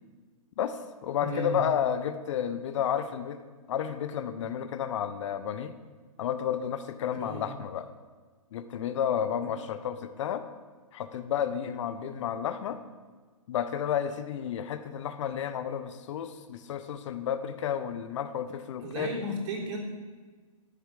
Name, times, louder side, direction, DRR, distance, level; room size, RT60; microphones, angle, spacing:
voice 1, 0.6-3.4 3.7-5.7 6.2-7.9 8.5-10.5 10.9-12.8 13.5-19.1, left 9 dB, 55° left, 11 dB, 0.9 m, -31 dB
voice 2, 1.2-1.6 7.2-7.5 18.8-19.8, equal, 50° right, -2 dB, 3.6 m, -34 dB
13.0 x 9.4 x 4.9 m, 1.4 s
hypercardioid pair, 130°, 19 cm